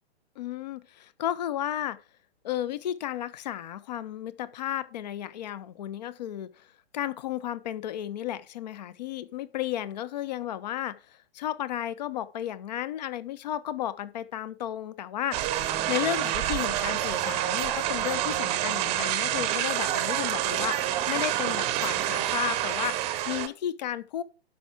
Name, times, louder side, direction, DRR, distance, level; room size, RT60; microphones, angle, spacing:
voice 1, 0.4-2.0 2.4-6.7 6.9-24.2, left 11 dB, 40° left, 0.7 m, -33 dB
sound 1, 15.3-23.5, right 12 dB, 20° right, 0.8 m, -28 dB
12.0 x 5.7 x 4.7 m
figure-of-eight pair, 125°, 32 cm